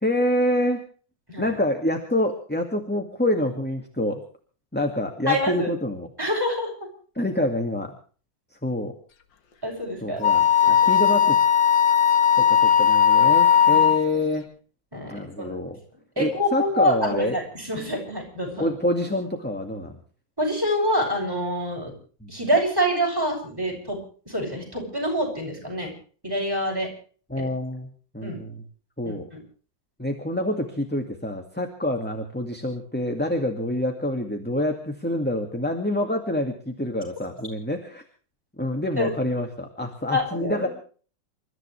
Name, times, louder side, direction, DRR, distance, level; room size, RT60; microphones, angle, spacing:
voice 1, 0.0-0.8 1.4-4.2 4.7-6.1 7.2-8.0 8.5-8.9 10.0-11.4 12.4-14.5 15.1-15.8 16.2-17.4 18.6-20.0 22.2-22.3 27.3-28.6 29.0-29.3 30.0-38.0 38.6-40.7, left 1 dB, 5° left, 4 dB, 2.1 m, -27 dB
voice 2, 5.3-5.7 6.2-6.9 9.6-10.2 10.6-10.7 13.7-13.8 14.9-15.7 16.2-18.7 20.4-21.9 22.3-24.0 24.3-25.9 26.2-26.9 27.3-27.4 28.2-28.4 29.0-29.2 39.0-39.1 40.1-40.7, equal, 10° right, 0 dB, 7.7 m, -26 dB
Wind instrument woodwind instrument, 10.2-14.1, left 8 dB, 75° left, 2.2 m, -17 dB
28.5 x 14.0 x 3.4 m, 0.42 s
omnidirectional pair, 2.0 m